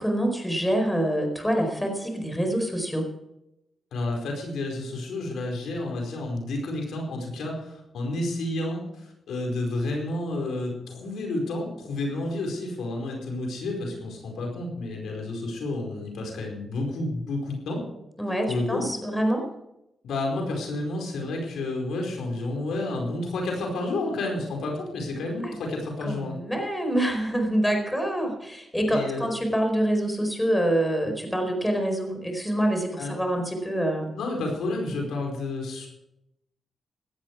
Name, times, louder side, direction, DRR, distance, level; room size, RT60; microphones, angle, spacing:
voice 1, 0.0-3.0 18.2-19.4 25.4-25.5 26.1-34.1, right 1 dB, 5° left, 4 dB, 4.6 m, -26 dB
voice 2, 3.9-17.8 18.5-18.9 20.0-26.4 28.9-29.3 33.0-33.2 34.2-35.9, left 2 dB, 90° left, 1 dB, 4.7 m, -30 dB
17.0 x 13.0 x 4.8 m, 0.86 s
cardioid pair, 75°, 0 cm